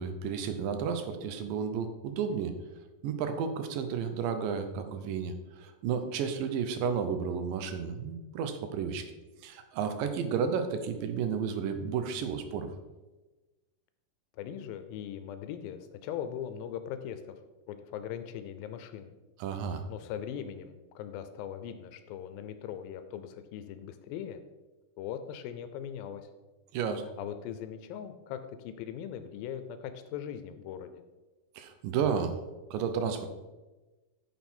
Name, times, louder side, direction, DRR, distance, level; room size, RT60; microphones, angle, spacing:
voice 1, 0.0-2.5 3.0-9.1 9.4-12.7 19.4-19.8 26.7-27.0 31.6-32.4 32.7-33.3, right 6 dB, 80° right, 8 dB, 2.4 m, -32 dB
voice 2, 14.3-17.4 17.7-19.1 19.9-24.4 25.0-26.3 27.2-31.0, left 9 dB, 90° left, 10 dB, 2.4 m, -40 dB
9.7 x 6.2 x 4.4 m, 1.1 s
omnidirectional pair, 4.1 m